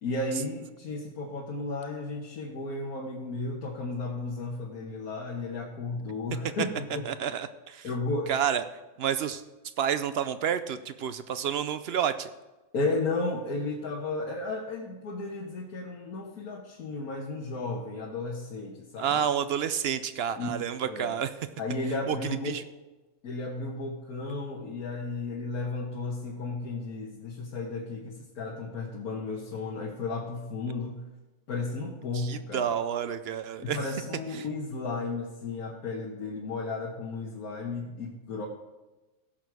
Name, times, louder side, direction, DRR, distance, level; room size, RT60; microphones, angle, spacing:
voice 1, 0.0-7.1 7.8-8.3 12.7-19.2 20.4-20.5 20.8-21.1 21.6-22.5 23.2-31.0 31.5-32.7 33.6-38.5, left 3 dB, 85° left, -2 dB, 1.6 m, -34 dB
voice 2, 7.0-7.9 8.3-8.6 9.0-9.4 9.8-12.3 19.0-21.3 22.1-22.6 32.1-33.8 34.3-34.4, right 8 dB, 65° right, 12 dB, 0.6 m, -29 dB
16.0 x 6.5 x 4.7 m, 1.1 s
omnidirectional pair, 1.5 m